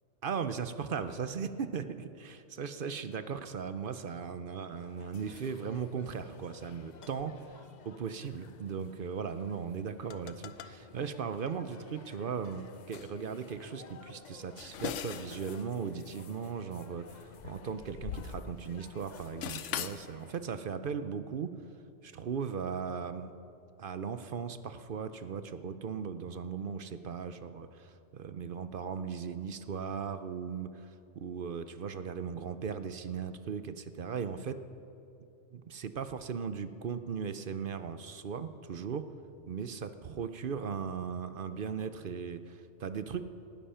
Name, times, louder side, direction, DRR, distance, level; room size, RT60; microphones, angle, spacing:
voice 1, 0.2-21.6 22.0-23.3 23.8-34.6 35.5-39.1 39.5-43.2, right 6 dB, 55° right, 11 dB, 0.8 m, -38 dB
sound 1, 4.8-20.4, left 6 dB, 45° left, 0.6 m, -55 dB
sound 2, 10.0-10.8 11.4-11.5 12.4-12.6 12.9-13.1 14.3-15.7 16.0-16.1 17.1-18.8 19.0-20.1, left 9 dB, 85° left, 1.0 m, -41 dB
19.0 x 12.5 x 5.6 m, 2.6 s
omnidirectional pair, 1.2 m